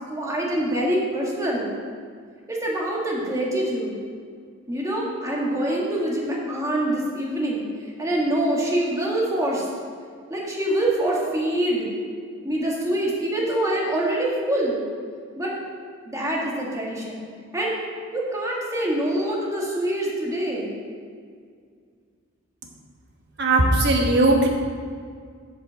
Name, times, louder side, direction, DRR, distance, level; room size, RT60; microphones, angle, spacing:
voice 1, 0.1-1.7 2.5-3.9 4.7-7.7 8.0-9.6 10.3-11.9 12.4-14.8 15.4-15.5 16.1-17.2 17.5-17.7 18.1-20.8, right 1 dB, 15° right, -4 dB, 1.7 m, -25 dB
voice 2, 23.4-24.5, right 2 dB, 55° right, 1 dB, 1.3 m, -18 dB
7.3 x 5.4 x 6.9 m, 2.1 s
head